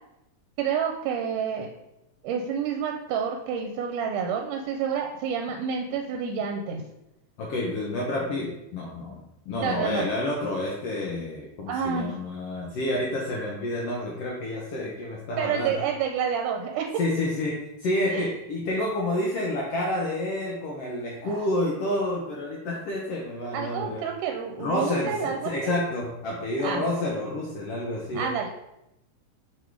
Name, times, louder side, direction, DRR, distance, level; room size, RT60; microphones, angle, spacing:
voice 1, 0.6-1.7 2.2-6.8 9.6-10.1 11.7-12.1 15.4-16.9 18.1-18.3 21.2-21.5 23.5-25.7 26.6-26.8 28.1-28.5, right 7 dB, 80° right, 3 dB, 2.1 m, -29 dB
voice 2, 7.4-15.8 17.0-24.0 24.6-28.3, left 1 dB, 70° left, -2 dB, 1.5 m, -29 dB
6.1 x 3.5 x 4.6 m, 0.87 s
omnidirectional pair, 3.6 m